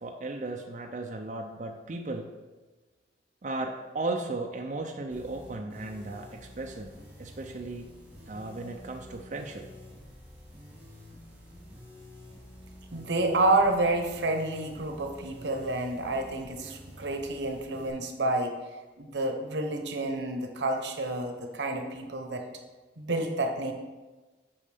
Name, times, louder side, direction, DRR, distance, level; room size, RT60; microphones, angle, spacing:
voice 1, 0.0-2.3 3.4-6.9 7.2-7.9 8.3-9.7, right 2 dB, 40° right, 2 dB, 0.4 m, -36 dB
sound 1, 5.1-17.9, left 1 dB, 10° right, 1.9 m, -49 dB
voice 2, 12.9-18.5 19.0-22.4 23.0-23.7, right 2 dB, 85° right, 4 dB, 0.9 m, -29 dB
8.7 x 5.3 x 3.4 m, 1.2 s
head